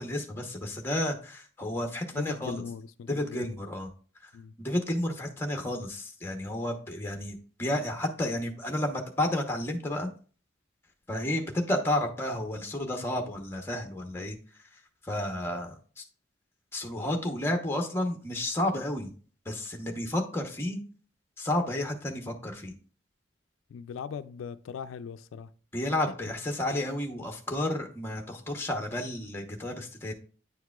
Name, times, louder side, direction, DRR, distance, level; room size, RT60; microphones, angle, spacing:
voice 1, 0.0-2.6 3.1-3.9 4.2-4.3 4.6-10.1 11.1-14.4 15.0-16.0 16.7-19.1 19.4-20.8 21.4-22.7 25.7-30.1, left 1 dB, 10° left, 0.9 m, -31 dB
voice 2, 2.1-3.5 4.3-4.5 23.7-25.5, left 6 dB, 85° left, 0.3 m, -39 dB
9.2 x 4.7 x 2.3 m
head